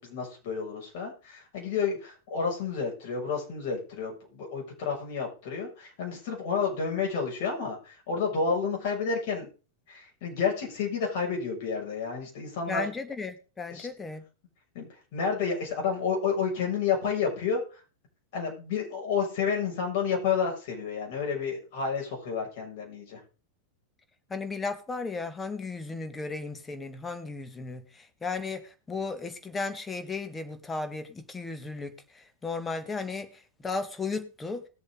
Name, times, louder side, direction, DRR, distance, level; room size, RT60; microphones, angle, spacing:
voice 1, 0.0-9.5 9.9-12.8 13.7-13.9 14.7-17.6 18.3-23.2, left 6 dB, 50° left, 0 dB, 6.9 m, -30 dB
voice 2, 12.7-14.2 24.3-34.6, left 4 dB, 15° left, 9 dB, 1.9 m, -35 dB
20.0 x 7.5 x 4.0 m, 0.35 s
figure-of-eight pair, 90°, 0 cm